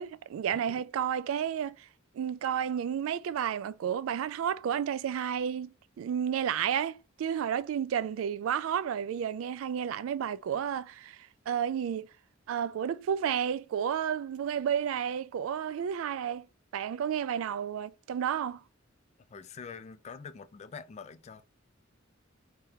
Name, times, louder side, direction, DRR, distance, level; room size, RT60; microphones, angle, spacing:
voice 1, 0.0-1.9 2.1-11.2 11.5-12.1 12.5-16.5 16.7-18.6, right 8 dB, 80° right, 0.3 m, -31 dB
voice 2, 0.5-0.8 19.3-21.4, left 5 dB, 35° left, 0.3 m, -45 dB
3.3 x 2.9 x 3.6 m
head